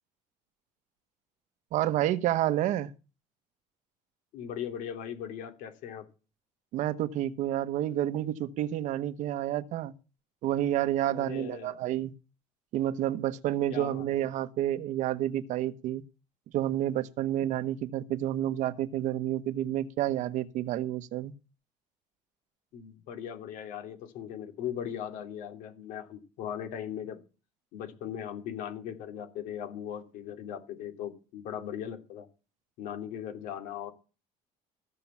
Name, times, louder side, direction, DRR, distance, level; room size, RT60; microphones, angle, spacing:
voice 1, 1.7-2.9 6.7-9.9 10.4-12.1 12.7-16.0 16.5-21.3, right 12 dB, 70° right, 1.1 m, -29 dB
voice 2, 4.3-6.1 11.1-11.8 13.7-14.0 22.7-27.2 27.7-32.3 32.8-33.9, left 9 dB, 80° left, 2.8 m, -38 dB
15.0 x 6.9 x 7.2 m
cardioid pair, 140°, 13 cm